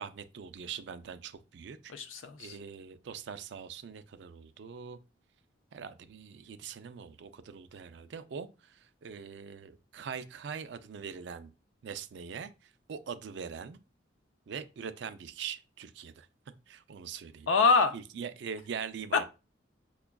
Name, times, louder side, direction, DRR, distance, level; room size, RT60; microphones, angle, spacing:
voice 1, 0.0-1.9 2.4-5.0 5.7-11.5 11.8-13.8 14.5-16.3 16.7-17.5 17.9-19.2, right 6 dB, 65° right, 0.4 m, -42 dB
voice 2, 1.9-2.6 17.5-17.9 19.1-19.2, left 4 dB, 90° left, 0.5 m, -25 dB
5.8 x 2.3 x 2.2 m
head